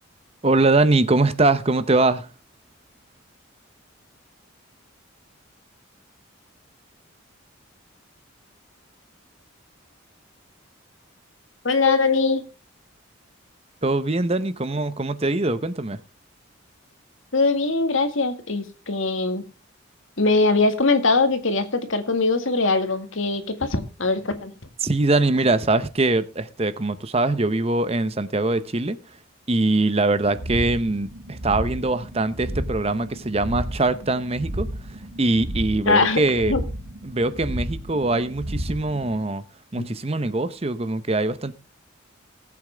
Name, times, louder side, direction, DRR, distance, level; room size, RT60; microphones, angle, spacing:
voice 1, 0.4-2.3 13.8-16.0 24.8-29.0 29.5-34.7 35.2-36.5 37.0-39.4 39.7-41.5, right 2 dB, 30° right, 0.8 m, -22 dB
voice 2, 11.6-12.4 17.3-19.4 20.2-24.5 35.9-36.2 36.5-36.6, left 3 dB, 70° left, 1.9 m, -21 dB
sound 1, 30.1-39.2, equal, 85° right, 2.0 m, -33 dB
19.0 x 8.3 x 3.4 m
head